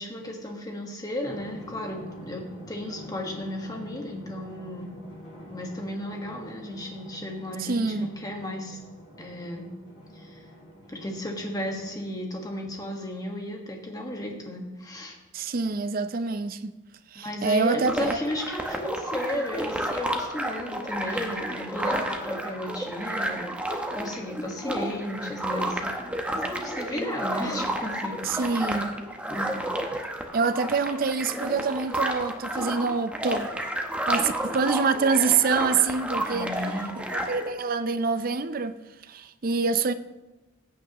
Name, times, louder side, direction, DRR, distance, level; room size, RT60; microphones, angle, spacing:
voice 1, 0.0-5.0 5.5-8.8 9.2-9.7 10.1-10.4 10.9-15.2 17.1-23.5 23.9-25.9 26.3-28.6 29.3-29.7 36.3-37.1, left 1 dB, 20° left, 1.4 m, -34 dB
Drum, 1.3-12.3, equal, 70° left, 4.0 m, -46 dB
voice 2, 7.6-8.1 15.3-16.7 17.1-18.2 28.2-28.9 30.3-33.5 34.1-36.5 37.3-38.8 39.1-39.9, right 4 dB, 45° right, 0.5 m, -26 dB
sound 1, 17.9-37.5, right 1 dB, 5° right, 0.8 m, -31 dB
15.0 x 8.4 x 3.0 m
head